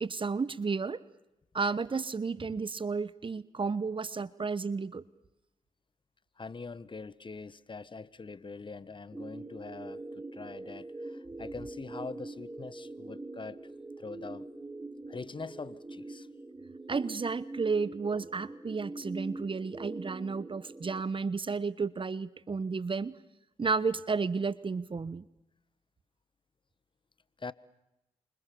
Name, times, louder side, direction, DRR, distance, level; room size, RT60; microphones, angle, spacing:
voice 1, 0.0-1.0 1.5-5.0 16.9-23.1 23.6-25.2, right 4 dB, 35° right, 1.2 m, -32 dB
voice 2, 6.4-13.6 14.0-14.5 15.1-16.3 27.4-27.5, left 4 dB, 35° left, 1.3 m, -43 dB
sound 1, 9.1-21.0, right 2 dB, 20° right, 2.0 m, -43 dB
29.0 x 26.5 x 7.1 m
hypercardioid pair, 45°, 14 cm